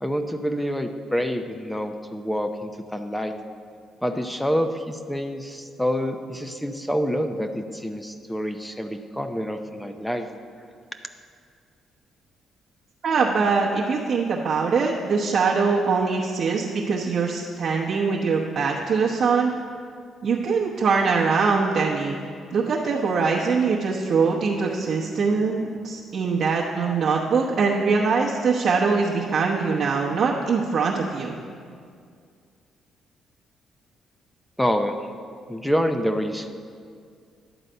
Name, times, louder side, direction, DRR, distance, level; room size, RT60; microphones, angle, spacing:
voice 1, 0.0-3.3 4.0-10.3 34.6-34.9 35.5-36.5, equal, 5° left, 6 dB, 0.5 m, -27 dB
voice 2, 13.0-19.5 20.2-22.2 22.5-31.3, right 5 dB, 55° right, -4 dB, 0.9 m, -22 dB
11.0 x 4.0 x 7.8 m, 2.2 s
cardioid pair, 90°, 0 cm